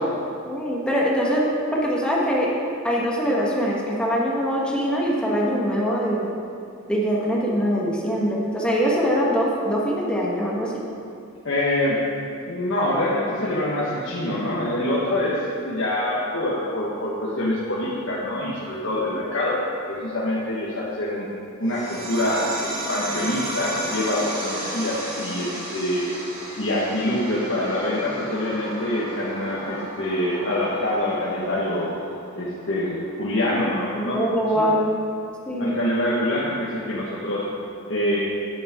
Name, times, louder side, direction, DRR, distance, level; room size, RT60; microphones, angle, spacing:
voice 1, 0.5-1.4 1.7-2.5 2.8-6.3 6.9-10.8 33.9-34.9 35.5-35.8, equal, 5° left, -4 dB, 1.5 m, -23 dB
voice 2, 11.4-12.0 12.5-15.4 15.6-19.6 19.8-21.3 21.6-26.0 26.6-31.9 32.3-34.2 34.5-34.6 35.6-37.4 37.9-38.2, left 1 dB, 65° left, -7 dB, 1.4 m, -25 dB
sound 1, 21.7-32.7, right 1 dB, 40° right, 2.3 m, -34 dB
10.5 x 8.8 x 3.7 m, 2.5 s
head